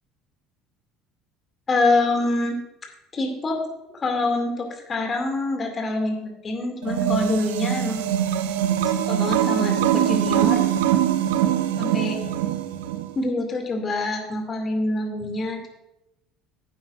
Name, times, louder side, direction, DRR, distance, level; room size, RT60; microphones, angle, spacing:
voice 1, 1.7-2.6 3.1-3.6 3.9-6.2 6.4-8.1 9.1-10.6 11.8-12.2 13.2-15.7, left 2 dB, 30° left, 2 dB, 2.2 m, -25 dB
sound 1, 6.8-13.1, right 11 dB, 65° right, 0.5 m, -22 dB
15.5 x 8.4 x 2.5 m, 0.92 s
figure-of-eight pair, 60°, 0 cm